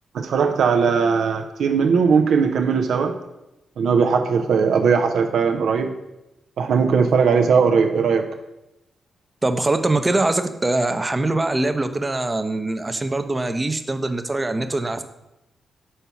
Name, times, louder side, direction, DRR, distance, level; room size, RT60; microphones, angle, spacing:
voice 1, 0.1-3.2 3.8-5.9 6.6-8.3, right 5 dB, 75° right, 5 dB, 0.5 m, -19 dB
voice 2, 9.4-15.0, right 2 dB, 25° right, 8 dB, 0.6 m, -23 dB
5.5 x 4.5 x 5.6 m, 0.91 s
supercardioid pair, 45°, 0 cm